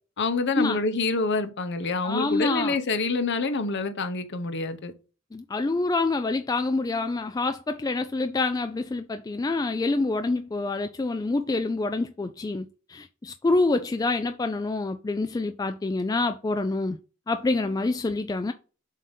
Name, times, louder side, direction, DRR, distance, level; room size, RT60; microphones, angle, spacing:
voice 1, 0.2-4.9, left 3 dB, 55° left, 0.9 m, -27 dB
voice 2, 2.0-2.8 5.3-17.0 17.3-18.5, left 3 dB, 20° left, 0.3 m, -27 dB
7.3 x 2.8 x 5.1 m
head